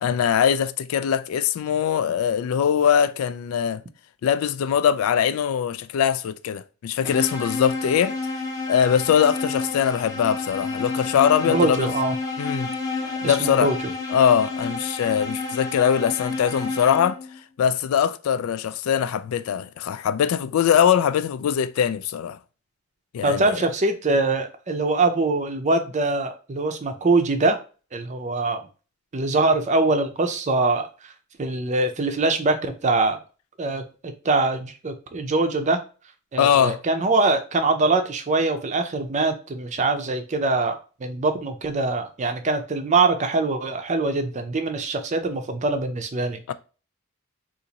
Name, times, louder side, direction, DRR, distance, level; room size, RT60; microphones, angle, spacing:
voice 1, 0.0-3.8 4.2-8.2 8.7-11.9 12.4-12.7 13.2-13.7 14.1-17.2 17.6-22.4 23.1-23.6 36.4-36.8 46.5-46.6, left 8 dB, 80° left, 0.3 m, -22 dB
sound 1, 7.0-17.4, left 3 dB, 15° left, 0.6 m, -30 dB
voice 2, 11.4-12.2 13.2-13.7 23.2-27.6 27.9-28.6 29.1-30.9 31.4-33.2 33.6-33.8 34.2-35.8 36.3-46.4, right 3 dB, 35° right, 0.5 m, -23 dB
2.8 x 2.5 x 3.9 m
head